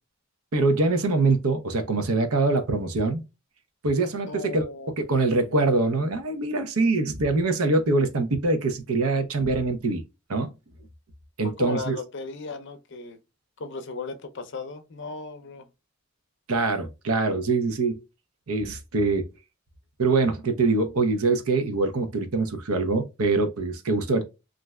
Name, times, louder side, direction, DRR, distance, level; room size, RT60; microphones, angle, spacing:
voice 1, 0.5-3.2 3.8-4.6 5.0-10.0 10.3-10.5 11.4-12.0 16.5-18.0 18.5-19.3 20.0-24.2, right 3 dB, 75° right, 0.7 m, -24 dB
voice 2, 4.3-4.9 11.4-13.2 13.6-15.7, left 3 dB, 55° left, 0.5 m, -36 dB
3.2 x 2.5 x 2.2 m
head